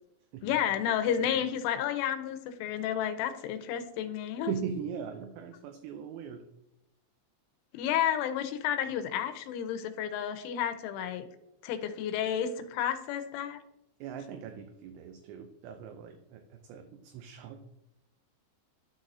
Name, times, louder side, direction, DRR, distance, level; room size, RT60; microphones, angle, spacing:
voice 1, 0.4-4.5 7.7-11.3 11.6-13.6, left 9 dB, 85° left, 8 dB, 3.2 m, -31 dB
voice 2, 4.5-6.4 14.0-17.6, right 7 dB, 80° right, 5 dB, 2.7 m, -40 dB
12.0 x 4.1 x 2.7 m, 0.85 s
omnidirectional pair, 5.5 m